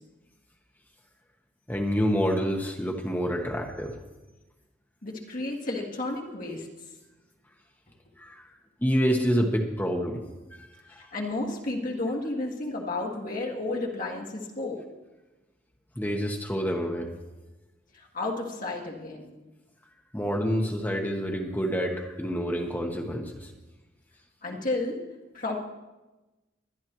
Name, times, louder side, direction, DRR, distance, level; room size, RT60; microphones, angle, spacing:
voice 1, 1.7-3.9 8.2-8.5 8.8-10.2 10.9-11.0 16.0-17.1 20.1-23.5, equal, 10° left, 1 dB, 1.0 m, -27 dB
voice 2, 5.0-6.7 11.0-14.8 18.1-19.3 24.4-25.0 25.3-25.6, left 2 dB, 45° left, -1 dB, 1.8 m, -32 dB
22.5 x 10.5 x 3.1 m, 1.1 s
head